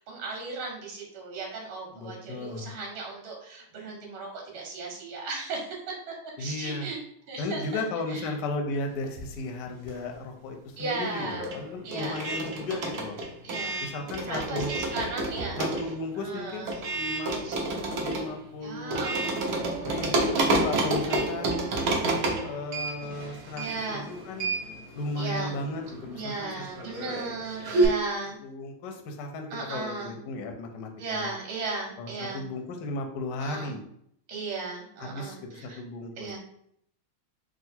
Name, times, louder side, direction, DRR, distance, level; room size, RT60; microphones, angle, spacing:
voice 1, 0.0-5.6 6.1-7.0 7.3-7.8 8.1-8.3 10.8-11.4 11.8-12.2 13.4-13.9 14.2-15.6 16.2-16.8 17.4-17.5 18.6-22.1 23.6-24.1 25.2-25.5 26.1-28.4 29.5-30.1 31.0-32.4 33.4-33.7 34.3-35.8 36.2-36.4, right 3 dB, 80° right, -1 dB, 1.7 m, -36 dB
voice 2, 1.9-2.7 6.4-6.9 7.4-13.2 13.8-14.7 15.6-17.3 17.9-19.1 19.8-21.7 22.4-24.5 24.9-27.2 28.4-31.3 32.0-33.8 35.0-36.4, left 2 dB, 70° left, 3 dB, 1.1 m, -35 dB
sound 1, 9.0-10.3 10.5-27.9, right 2 dB, 60° right, 1.1 m, -30 dB
3.7 x 2.4 x 4.2 m, 0.69 s
omnidirectional pair, 2.3 m